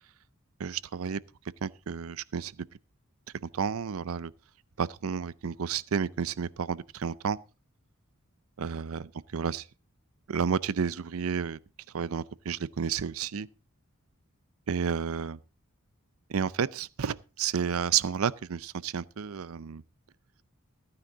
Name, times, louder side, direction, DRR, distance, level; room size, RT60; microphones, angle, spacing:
voice 1, 0.6-1.2 1.6-2.5 3.5-4.3 4.8-7.4 8.6-9.6 10.3-11.6 11.9-13.5 14.7-15.4 16.3-19.8, right 7 dB, 75° right, 0.5 m, -31 dB
14.5 x 9.7 x 3.9 m
head